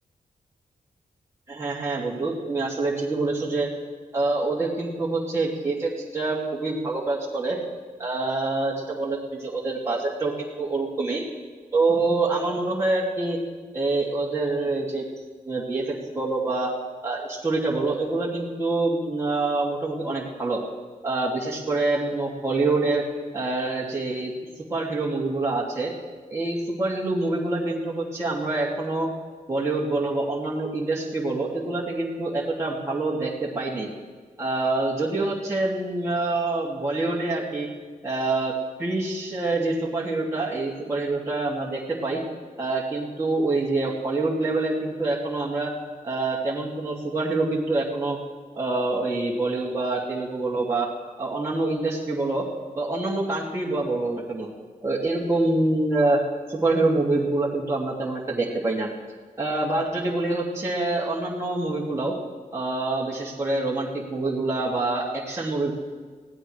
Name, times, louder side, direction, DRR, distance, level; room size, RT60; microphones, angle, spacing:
voice 1, 1.5-3.7 4.1-7.6 8.0-11.2 11.7-13.4 13.7-15.1 15.5-16.7 17.0-20.6 21.0-23.0 23.3-24.3 24.7-25.9 26.3-29.1 29.5-33.9 34.4-37.7 38.0-38.5 38.8-42.2 42.6-45.7 46.0-48.2 48.5-50.9 51.2-52.5 52.8-54.5 54.8-56.2 56.5-58.9 59.4-62.1 62.5-65.7, right 2 dB, 20° right, -5 dB, 2.3 m, -26 dB
21.5 x 16.5 x 3.2 m, 1.5 s
wide cardioid pair, 110°, 14 cm